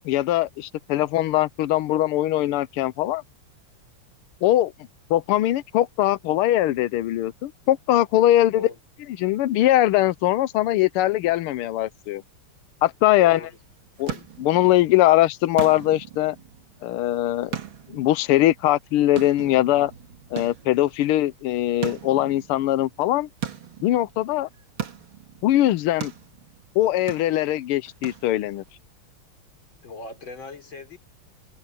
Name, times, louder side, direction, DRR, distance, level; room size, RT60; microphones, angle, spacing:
voice 1, 0.0-3.2 4.4-4.7 5.1-8.7 9.2-12.2 12.8-13.4 14.0-14.1 14.4-16.4 16.8-17.5 17.9-19.9 20.3-23.3 23.8-24.5 25.4-26.1 26.7-28.6, left 14 dB, 90° left, 1.6 m, -21 dB
voice 2, 13.2-13.6 29.8-31.0, left 4 dB, 60° left, 5.0 m, -37 dB
sound 1, 13.5-28.7, right 9 dB, 65° right, 2.5 m, -39 dB
omnidirectional pair, 2.4 m